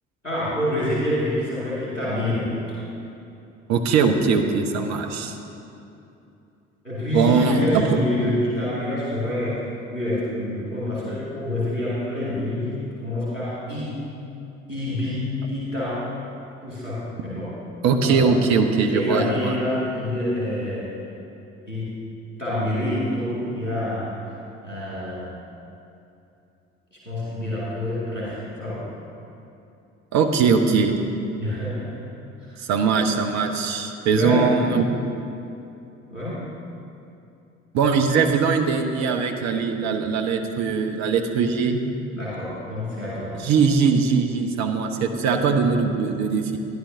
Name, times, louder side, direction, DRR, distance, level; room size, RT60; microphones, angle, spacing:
voice 1, 0.2-2.5 6.8-9.6 9.9-14.1 14.7-16.1 16.6-17.6 18.0-18.3 18.9-20.9 21.7-22.0 22.4-24.4 24.6-25.3 26.9-28.9 31.4-32.0 32.4-32.6 34.1-34.7 36.1-36.4 42.1-43.4, left 1 dB, 90° left, -9 dB, 2.3 m, -27 dB
voice 2, 3.7-5.4 7.1-8.0 17.8-19.5 30.1-31.0 32.6-35.1 37.7-41.8 43.4-46.6, right 5 dB, 50° right, 5 dB, 0.9 m, -21 dB
14.0 x 10.5 x 2.7 m, 2.8 s
figure-of-eight pair, 50°, 36 cm